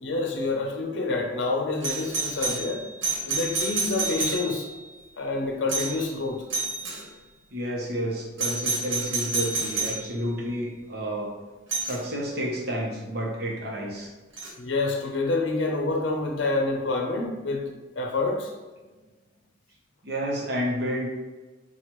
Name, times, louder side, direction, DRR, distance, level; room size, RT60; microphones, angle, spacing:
voice 1, 0.0-2.9 3.3-4.7 5.2-6.4 14.6-18.5, left 3 dB, 70° left, 2 dB, 0.6 m, -27 dB
Doorbell, 1.8-4.8 5.7-6.1 6.5-7.0 8.4-10.0 11.7-12.0 14.4-14.5, right 3 dB, 75° right, 1.2 m, -29 dB
voice 2, 7.5-11.4 11.8-14.1 20.0-21.1, equal, 55° right, -1 dB, 0.9 m, -30 dB
5.9 x 2.3 x 3.0 m, 1.2 s
head